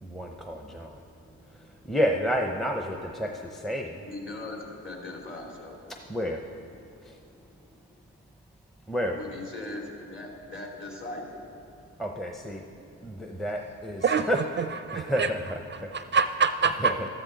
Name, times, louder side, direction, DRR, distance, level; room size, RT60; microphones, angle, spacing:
voice 1, 0.0-1.0 1.5-4.0 6.1-6.7 7.0-7.2 8.9-9.2 12.0-12.6 13.0-14.4 14.9-15.9 16.8-16.9, equal, ahead, 2 dB, 0.7 m, -30 dB
voice 2, 4.0-4.6 4.8-5.8 9.1-9.8 10.1-11.4, left 2 dB, 40° left, -1 dB, 2.8 m, -39 dB
voice 3, 14.0-15.3 15.7-17.1, right 5 dB, 40° right, 10 dB, 0.4 m, -26 dB
13.0 x 12.5 x 4.0 m, 2.7 s
cardioid pair, 90°, 30 cm